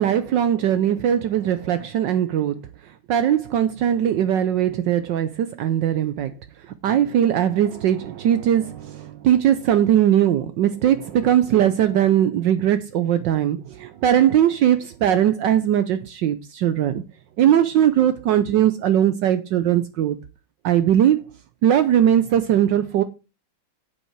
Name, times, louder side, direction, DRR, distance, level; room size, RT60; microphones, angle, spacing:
voice 1, 0.0-2.6 3.1-6.3 6.8-17.0 17.4-20.2 20.6-21.2 21.6-23.0, right 10 dB, 70° right, 1.3 m, -20 dB
8.7 x 8.3 x 4.6 m
omnidirectional pair, 2.1 m